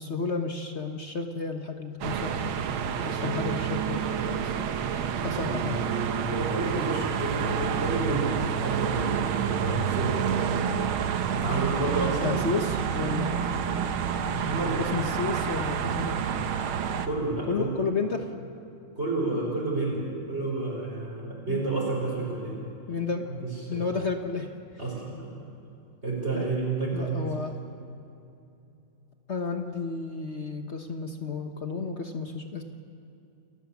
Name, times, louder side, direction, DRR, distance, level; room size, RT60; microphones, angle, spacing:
voice 1, 0.0-2.5 3.0-4.7 5.2-5.8 11.4-11.5 12.2-13.3 14.8-16.2 17.5-18.3 21.5-21.6 22.9-23.3 23.7-24.5 26.3-26.4 26.9-27.5 29.3-32.6, left 4 dB, 45° left, 5 dB, 1.0 m, -32 dB
sound 1, 2.0-17.1, right 7 dB, 80° right, 1.8 m, -28 dB
voice 2, 6.3-10.9 11.3-12.4 13.4-13.5 14.4-14.8 17.0-17.7 19.0-22.6 23.4-23.9 24.8-25.3 26.0-27.3, right 2 dB, 30° right, -4 dB, 5.1 m, -30 dB
28.5 x 14.0 x 7.2 m, 2.7 s
omnidirectional pair, 2.3 m